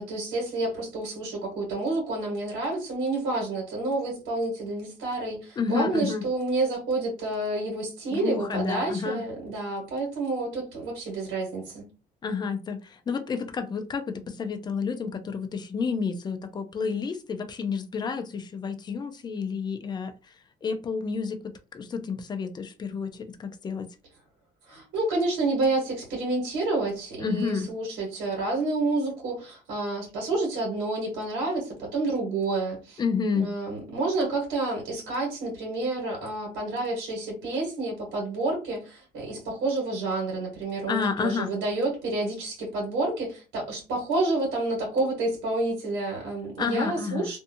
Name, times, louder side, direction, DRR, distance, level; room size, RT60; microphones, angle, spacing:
voice 1, 0.0-11.8 24.7-33.0 33.3-47.4, right 2 dB, 90° right, 1.2 m, -29 dB
voice 2, 5.6-6.2 8.1-9.2 12.2-20.3 20.6-23.9 27.2-27.7 33.0-33.5 40.9-41.5 46.6-47.3, left 5 dB, 25° left, 0.4 m, -30 dB
2.6 x 2.3 x 2.7 m
cardioid pair, 110°, 17 cm